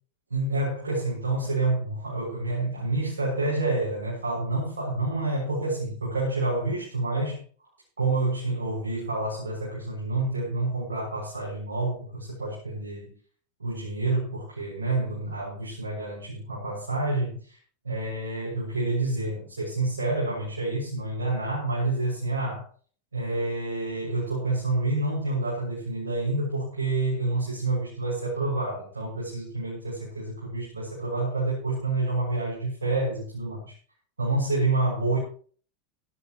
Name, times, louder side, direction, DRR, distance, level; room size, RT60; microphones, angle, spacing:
voice 1, 0.3-7.4 8.0-13.1 13.6-17.6 17.9-22.7 23.1-33.7 34.2-35.2, right 2 dB, 80° right, -6 dB, 7.2 m, -28 dB
19.5 x 12.5 x 3.2 m, 0.44 s
figure-of-eight pair, 85°, 0 cm